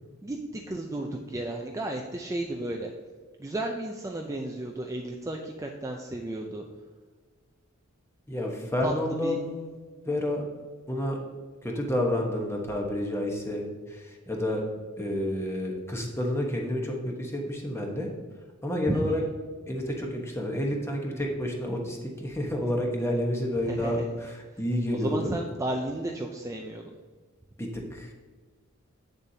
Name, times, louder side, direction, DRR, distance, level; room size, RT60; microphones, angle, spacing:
voice 1, 0.2-2.9 3.4-6.6 8.8-9.4 18.9-19.3 23.6-24.1 24.9-26.8, right 1 dB, 15° right, 1 dB, 0.4 m, -33 dB
voice 2, 8.3-9.7 10.0-10.4 10.9-11.2 11.6-14.6 15.0-18.1 18.6-19.2 19.7-25.3 27.6-28.1, left 1 dB, 15° left, 0 dB, 1.1 m, -30 dB
8.3 x 7.0 x 2.8 m, 1.4 s
head